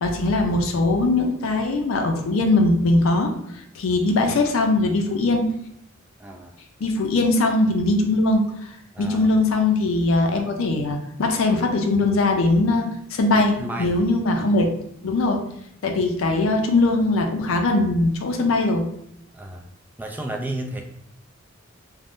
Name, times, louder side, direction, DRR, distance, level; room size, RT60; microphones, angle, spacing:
voice 1, 0.0-3.3 3.7-5.5 6.8-8.5 9.0-14.7 15.0-15.4 15.8-18.8, left 2 dB, 85° left, 3 dB, 0.4 m, -20 dB
voice 2, 6.2-6.5 8.9-9.3 13.3-14.0 14.4-14.6 19.3-19.6 20.0-20.8, right 1 dB, 10° right, 1 dB, 0.3 m, -33 dB
2.5 x 2.1 x 3.5 m, 0.77 s
head